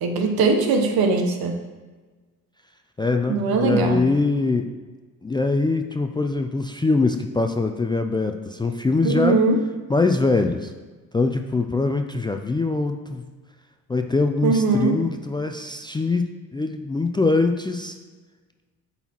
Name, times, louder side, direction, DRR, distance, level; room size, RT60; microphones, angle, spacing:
voice 1, 0.0-1.6 3.3-4.0 9.0-9.6 14.4-15.0, right 3 dB, 70° right, 4 dB, 1.0 m, -20 dB
voice 2, 3.0-4.7 5.2-9.4 9.9-10.7 11.1-13.2 13.9-18.0, left 3 dB, 15° left, 5 dB, 0.3 m, -23 dB
8.0 x 4.2 x 3.0 m, 1.3 s
supercardioid pair, 70°, 38 cm